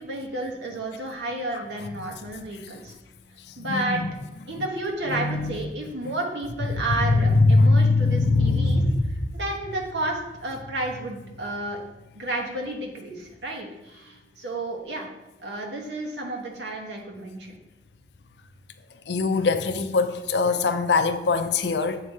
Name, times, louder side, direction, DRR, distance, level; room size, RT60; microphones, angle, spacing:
voice 1, 0.0-2.9 3.6-4.0 4.5-8.8 9.3-11.8 12.1-15.1 15.4-17.5, right 2 dB, 90° right, 1.2 m, -31 dB
voice 2, 3.6-4.1 5.1-5.6 6.0-6.1 7.0-9.1 19.1-22.0, left 3 dB, 75° left, 0.5 m, -21 dB
8.0 x 2.8 x 4.7 m
head